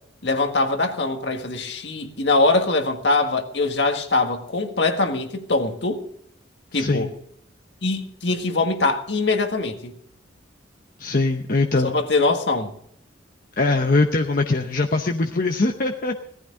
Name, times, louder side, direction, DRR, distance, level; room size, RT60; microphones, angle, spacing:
voice 1, 0.2-6.0 6.7-7.1 7.8-9.9 11.8-12.7, left 3 dB, 65° left, 1.8 m, -22 dB
voice 2, 6.7-7.1 11.0-11.9 13.6-16.1, left 3 dB, 45° left, 0.9 m, -22 dB
18.0 x 14.5 x 3.8 m
head